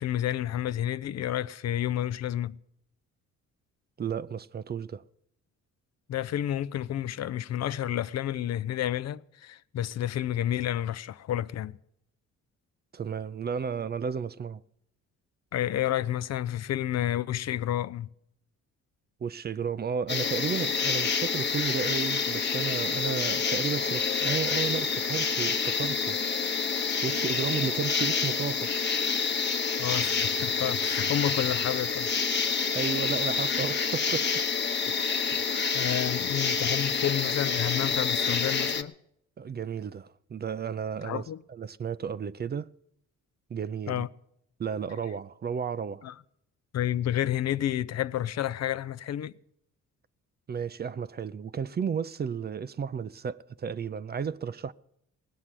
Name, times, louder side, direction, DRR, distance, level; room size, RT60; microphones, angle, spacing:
voice 1, 0.0-2.6 6.1-11.8 15.5-18.1 29.8-32.1 35.7-38.9 41.0-41.4 43.9-44.1 46.0-46.1 46.7-49.3, left 11 dB, 60° left, 0.6 m, -30 dB
voice 2, 4.0-5.0 12.9-14.6 19.2-26.2 27.0-28.7 32.7-34.3 39.4-42.7 43.5-44.1 44.6-46.1 50.5-54.7, right 6 dB, 35° right, 0.5 m, -33 dB
sound 1, 20.1-38.8, left 5 dB, 35° left, 1.0 m, -28 dB
18.5 x 7.4 x 9.8 m
cardioid pair, 90°, 30 cm